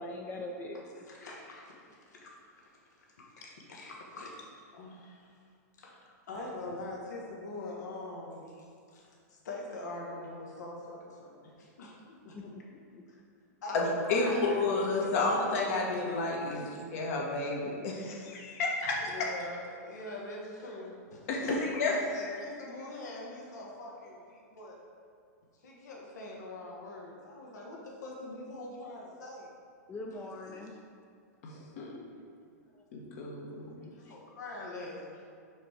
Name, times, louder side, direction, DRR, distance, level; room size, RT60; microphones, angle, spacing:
voice 1, 0.0-0.8 12.3-13.0 29.9-30.8 32.7-32.8 33.8-34.3, left 2 dB, 20° left, 1 dB, 0.4 m, -43 dB
voice 2, 1.0-4.4 4.7-5.4 5.8-12.5 13.1-13.2 13.6-14.6 16.5-16.6 19.0-21.6 22.1-24.8 25.6-29.5 30.1-30.2 30.4-30.7 33.9-35.2, left 2 dB, 80° left, -2 dB, 1.3 m, -43 dB
voice 3, 13.7-16.6 16.9-19.3 21.3-21.5 21.8-22.4 31.4-31.9 32.9-33.9, left 3 dB, 55° left, -1 dB, 1.3 m, -31 dB
5.1 x 5.0 x 4.6 m, 2.3 s
hypercardioid pair, 140°, 9 cm